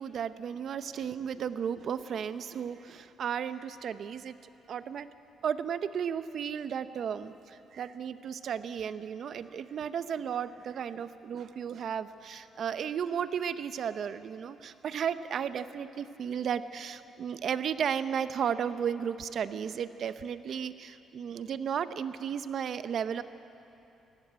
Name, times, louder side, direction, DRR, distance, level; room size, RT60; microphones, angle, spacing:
voice 1, 0.0-4.4 4.7-5.1 5.4-23.2, right 8 dB, 60° right, 12 dB, 0.8 m, -34 dB
17.5 x 16.5 x 9.5 m, 2.8 s
cardioid pair, 90°, 0 cm